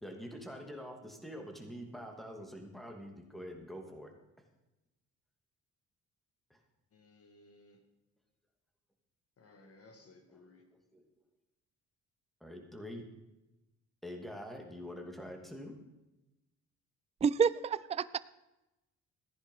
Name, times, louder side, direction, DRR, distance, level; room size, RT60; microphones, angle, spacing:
voice 1, 0.0-4.1 6.5-6.6 10.9-11.0 12.4-13.1 14.0-15.8, equal, ahead, 3 dB, 2.6 m, -45 dB
voice 2, 6.9-7.8 9.4-10.6, left 2 dB, 50° left, 5 dB, 2.1 m, -59 dB
voice 3, 17.2-18.2, right 6 dB, 20° right, 17 dB, 0.4 m, -29 dB
14.5 x 10.0 x 5.5 m, 0.98 s
cardioid pair, 90°, 30 cm